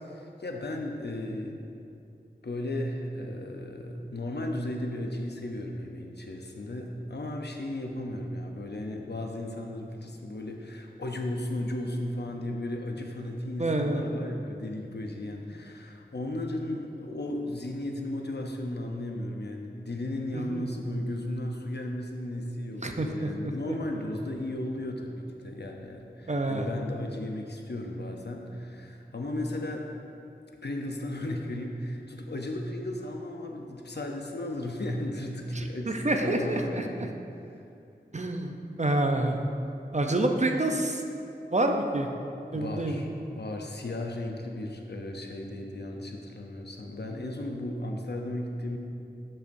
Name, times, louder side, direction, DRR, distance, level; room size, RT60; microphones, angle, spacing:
voice 1, 0.0-1.6 2.4-29.9 30.6-37.1 42.5-48.8, left 1 dB, 75° left, 2 dB, 0.7 m, -35 dB
voice 2, 13.6-14.0 20.3-20.6 22.8-23.7 26.3-26.7 35.6-37.1 38.1-38.5 38.8-39.4 39.9-41.0 41.5-42.1 42.5-43.0 47.1-47.2, right 2 dB, 40° right, 4 dB, 0.6 m, -28 dB
12.0 x 5.6 x 2.7 m, 2.6 s
wide cardioid pair, 50°, 18 cm